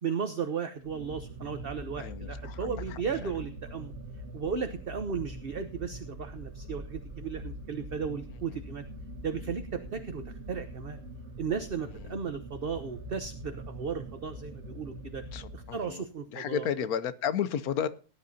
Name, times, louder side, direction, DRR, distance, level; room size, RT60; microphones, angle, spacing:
voice 1, 0.0-3.9 4.3-8.8 9.2-11.0 11.4-15.2 15.5-16.7, right 6 dB, 45° right, 8 dB, 1.0 m, -35 dB
sound 1, 0.8-16.1, right 1 dB, 65° right, 1.8 m, -43 dB
voice 2, 1.9-3.3 8.3-8.6 12.0-12.2 15.3-16.1 16.3-17.9, left 8 dB, 75° left, 15 dB, 1.3 m, -33 dB
18.5 x 10.5 x 2.7 m, 0.37 s
omnidirectional pair, 1.6 m